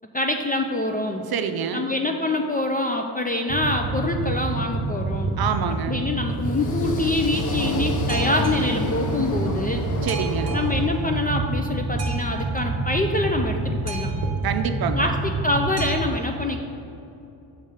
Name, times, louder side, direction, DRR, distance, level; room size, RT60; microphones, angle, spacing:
voice 1, 0.1-1.2 1.7-5.4 5.9-9.8 10.5-14.1 14.9-16.6, left 2 dB, 20° left, 3 dB, 0.3 m, -25 dB
voice 2, 1.3-1.9 5.4-6.0 10.0-10.5 14.4-15.1, right 7 dB, 50° right, 7 dB, 0.6 m, -26 dB
Boat Water vehicle, 3.5-16.0, right 2 dB, 30° right, 0.9 m, -27 dB
sound 1, 6.3-11.4, left 2 dB, 40° left, 0.8 m, -31 dB
6.3 x 3.6 x 5.5 m, 2.8 s
cardioid pair, 80°, 49 cm